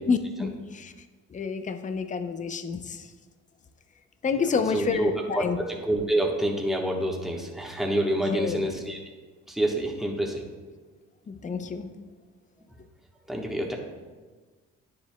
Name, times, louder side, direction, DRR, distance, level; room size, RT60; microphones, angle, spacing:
voice 1, 0.1-0.9 1.3-3.0 4.2-5.6 8.1-8.6 11.3-11.9, left 5 dB, 25° left, 9 dB, 0.5 m, -29 dB
voice 2, 4.5-9.0 9.5-10.4 11.5-11.6 13.3-13.7, right 1 dB, ahead, -1 dB, 1.2 m, -27 dB
9.8 x 7.4 x 2.2 m, 1.4 s
cardioid pair, 90°, 30 cm